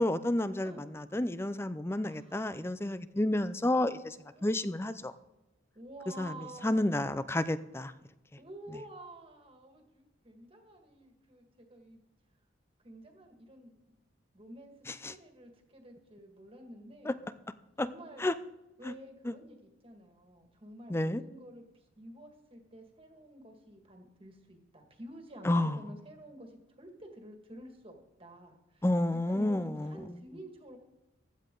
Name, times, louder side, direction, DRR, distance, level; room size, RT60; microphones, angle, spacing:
voice 1, 0.0-4.2 4.4-5.1 6.2-7.9 14.9-15.1 17.0-17.1 17.8-17.9 18.2-18.3 18.8-18.9 19.2-19.3 20.9-21.2 25.4-25.8 28.8-30.2, left 1 dB, 15° left, 14 dB, 0.5 m, -30 dB
voice 2, 2.0-2.5 4.3-4.7 5.7-7.0 8.4-12.0 12.8-13.7 14.3-14.7 15.1-17.2 17.8-18.3 18.8-28.9 29.3-30.8, right 1 dB, 30° right, 3 dB, 1.9 m, -50 dB
15.5 x 12.0 x 3.9 m, 1.1 s
head